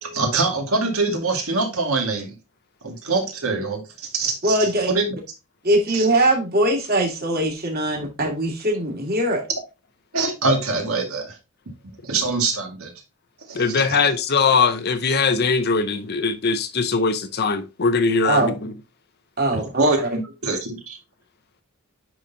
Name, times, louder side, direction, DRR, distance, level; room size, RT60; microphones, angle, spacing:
voice 1, 0.0-2.3 2.8-5.0 5.9-6.1 10.1-11.3 12.0-12.9 13.5-14.0 19.5-21.0, right 3 dB, 80° right, 2.0 m, -24 dB
voice 2, 4.4-4.9 5.6-9.4 18.2-18.5 19.4-19.8, right 1 dB, 45° right, 2.3 m, -21 dB
voice 3, 13.5-18.5, left 4 dB, 50° left, 0.7 m, -21 dB
10.0 x 4.0 x 2.8 m
head